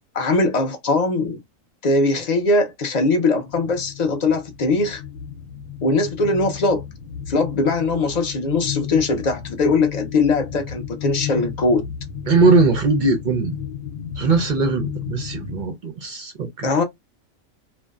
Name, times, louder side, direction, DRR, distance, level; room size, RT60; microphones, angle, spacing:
voice 1, 0.1-1.4 1.8-5.0 5.8-6.8 7.3-11.8 16.6-16.8, left 3 dB, 55° left, 0.5 m, -20 dB
sound 1, 3.5-15.6, left 8 dB, 90° left, 1.0 m, -33 dB
voice 2, 12.3-13.5 14.2-16.7, right 3 dB, 60° right, 0.5 m, -20 dB
2.5 x 2.1 x 2.3 m
omnidirectional pair, 1.4 m